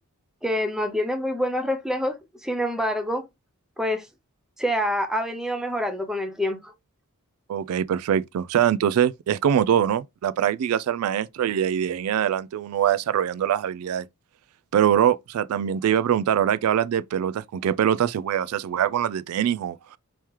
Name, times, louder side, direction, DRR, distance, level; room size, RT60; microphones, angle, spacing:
voice 1, 0.4-3.2 3.8-4.1 4.6-6.7, equal, ahead, 0.5 m, -26 dB
voice 2, 7.5-14.1 14.7-20.0, right 9 dB, 75° right, 0.3 m, -23 dB
3.1 x 2.9 x 3.5 m
head